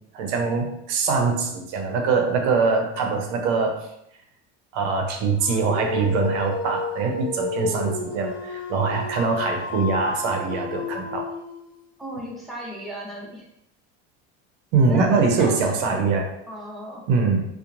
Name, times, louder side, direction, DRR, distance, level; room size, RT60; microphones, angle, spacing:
voice 1, 0.1-3.8 4.7-11.3 14.7-16.3 17.1-17.4, right 4 dB, 70° right, 2 dB, 0.6 m, -23 dB
Dog, 5.4-11.7, left 3 dB, 55° left, 0.6 m, -31 dB
voice 2, 12.0-13.5 14.9-16.0 16.5-17.0, right 1 dB, ahead, -4 dB, 0.7 m, -35 dB
2.8 x 2.1 x 2.5 m, 0.77 s
supercardioid pair, 85°, 33 cm